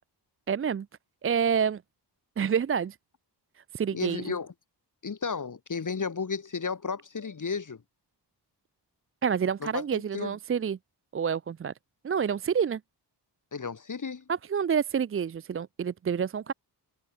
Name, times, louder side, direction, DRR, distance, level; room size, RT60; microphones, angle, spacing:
voice 1, 0.5-0.9 1.2-1.8 2.4-3.0 3.7-4.3 9.2-10.8 11.1-11.7 12.0-12.8 14.3-16.5, right 7 dB, 35° right, 0.4 m, -28 dB
voice 2, 3.9-4.5 5.0-7.8 9.6-10.3 13.5-14.2, left 5 dB, 45° left, 2.0 m, -33 dB
wide cardioid pair, 90°, 42 cm